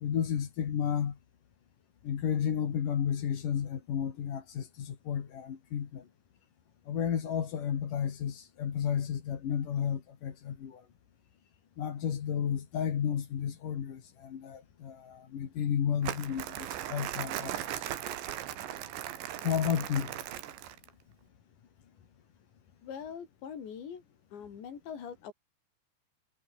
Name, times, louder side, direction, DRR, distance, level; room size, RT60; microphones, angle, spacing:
voice 1, 0.0-1.1 2.0-6.0 6.9-10.8 11.8-17.5 19.4-20.1, left 8 dB, 50° left, 3.5 m, -32 dB
Crumpling crinkling, 16.0-20.9, right 12 dB, 75° right, 4.1 m, -38 dB
voice 2, 22.8-24.0 24.3-25.3, left 7 dB, 70° left, 6.3 m, -42 dB
omnidirectional pair, 5.3 m